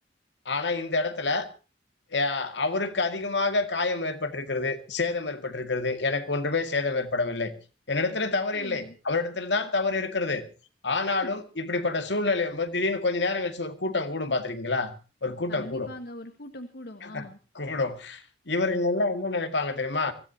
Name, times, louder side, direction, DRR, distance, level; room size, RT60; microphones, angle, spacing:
voice 1, 0.5-1.5 2.1-7.5 7.9-10.4 10.8-14.9 15.2-15.9 17.1-17.2 17.6-20.1, left 3 dB, 85° left, 2.2 m, -27 dB
voice 2, 8.5-8.9 11.1-11.4 15.5-17.4, left 1 dB, 65° left, 1.5 m, -41 dB
24.5 x 16.0 x 2.9 m
head